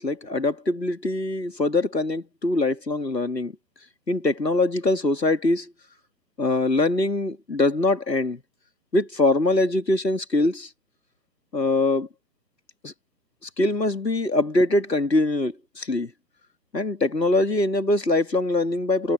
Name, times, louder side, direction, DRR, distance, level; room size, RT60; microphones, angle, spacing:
voice 1, 0.0-3.5 4.1-5.7 6.4-8.4 8.9-10.7 11.5-12.1 12.8-12.9 13.4-16.1 16.7-19.1, left 2 dB, 85° left, 2.1 m, -23 dB
figure-of-eight pair, 135°, 48 cm